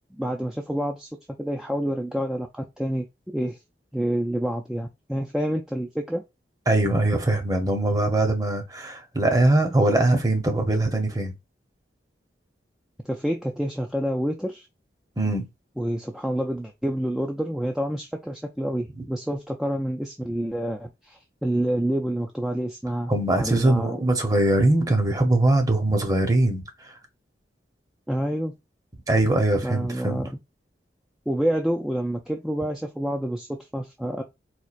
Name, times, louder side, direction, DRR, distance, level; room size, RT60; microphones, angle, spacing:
voice 1, 0.1-1.1 1.4-3.6 3.9-6.2 13.0-14.7 15.8-24.1 28.1-28.5 29.6-30.4 31.3-34.2, right 1 dB, ahead, 0.3 m, -28 dB
voice 2, 6.7-11.3 15.2-15.5 23.1-26.9 29.1-30.3, right 2 dB, 20° right, 0.8 m, -22 dB
4.3 x 2.4 x 2.4 m
head